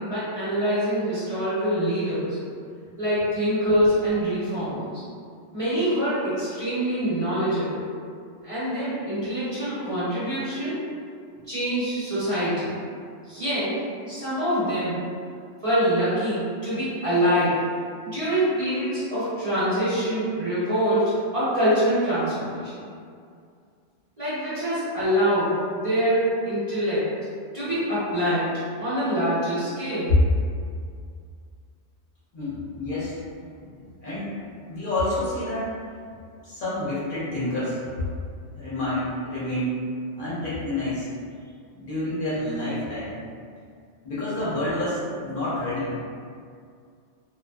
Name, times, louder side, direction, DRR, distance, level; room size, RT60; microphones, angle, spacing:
voice 1, 0.0-2.4 3.0-5.0 5.5-7.8 8.4-10.8 11.5-12.8 13.2-15.0 15.6-17.6 18.0-22.9 24.2-27.1 27.5-28.5 28.8-30.2, equal, 35° right, -13 dB, 0.7 m, -25 dB
voice 2, 32.3-33.2 33.6-34.3 34.7-35.7 36.4-38.1 38.5-39.7 40.2-41.1 41.7-43.1 44.0-45.9, left 1 dB, 50° left, -10 dB, 0.8 m, -29 dB
2.4 x 2.3 x 2.2 m, 2.3 s
omnidirectional pair, 1.2 m